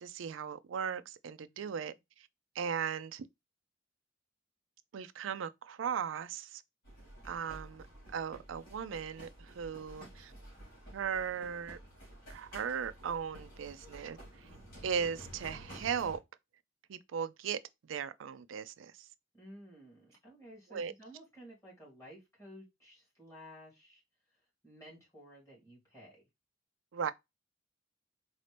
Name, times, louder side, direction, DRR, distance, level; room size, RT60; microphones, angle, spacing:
voice 1, 0.0-2.3 2.6-3.3 4.9-6.6 7.2-7.8 8.1-10.3 10.9-11.8 12.3-14.5 14.8-16.2 16.9-19.1 20.7-20.9 26.9-27.1, right 7 dB, 80° right, 0.4 m, -37 dB
voice 2, 1.4-2.0 19.3-26.3, equal, 15° left, 2.5 m, -54 dB
sound 1, 6.8-16.2, right 1 dB, 50° left, 2.7 m, -52 dB
4.2 x 2.7 x 3.3 m
head